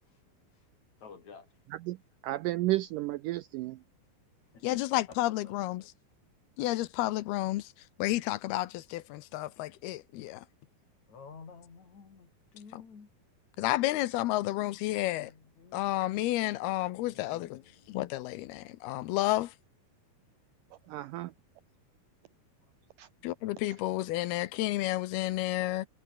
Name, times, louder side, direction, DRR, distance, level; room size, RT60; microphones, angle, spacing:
voice 1, 1.0-1.7 2.0-2.1 4.0-4.1 4.4-6.1 11.1-13.1 15.1-15.9 17.0-17.9 21.2-21.3 22.6-22.7, left 5 dB, 45° left, 5.2 m, -53 dB
voice 2, 2.2-3.8 20.9-21.3 23.0-23.1, right 17 dB, 90° right, 1.8 m, -32 dB
voice 3, 4.6-5.8 6.6-7.6 8.0-10.4 12.7-12.8 13.6-15.3 15.7-17.6 17.9-19.5 23.2-25.9, left 16 dB, 80° left, 2.8 m, -31 dB
omnidirectional pair, 4.6 m